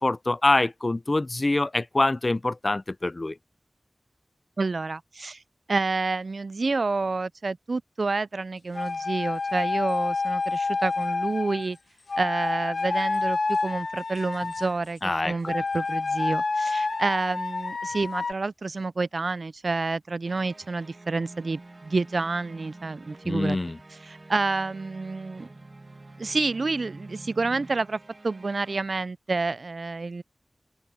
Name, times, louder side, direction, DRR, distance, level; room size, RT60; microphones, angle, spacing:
voice 1, 0.0-3.4 15.0-15.5 23.2-23.8, left 2 dB, 45° left, 0.4 m, -25 dB
voice 2, 4.6-5.4 5.7-11.8 12.2-15.0 15.2-23.6 24.0-25.5 26.2-30.2, right 3 dB, 75° right, 0.4 m, -29 dB
sound 1, 8.7-11.7 12.1-14.8 15.4-18.3, left 3 dB, 85° left, 1.1 m, -28 dB
sound 2, 20.3-28.8, right 2 dB, 50° right, 2.3 m, -47 dB
wide cardioid pair, 65°, 0 cm